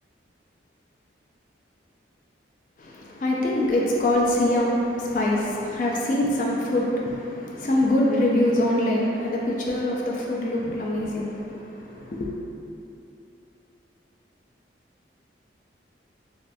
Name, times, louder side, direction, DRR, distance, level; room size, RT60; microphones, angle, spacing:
voice 1, 2.8-12.3, left 1 dB, 45° left, -3 dB, 0.3 m, -24 dB
2.6 x 2.5 x 3.3 m, 2.8 s
head